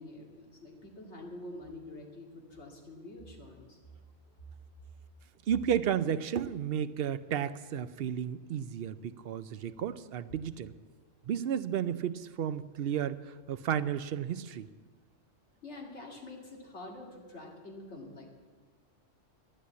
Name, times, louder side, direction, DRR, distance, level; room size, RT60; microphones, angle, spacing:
voice 1, 0.0-3.8 15.6-18.3, left 2 dB, 60° left, 0 dB, 2.6 m, -46 dB
voice 2, 5.5-10.7 11.2-14.7, right 9 dB, 60° right, 13 dB, 0.6 m, -33 dB
12.5 x 10.0 x 8.2 m, 1.4 s
omnidirectional pair, 1.3 m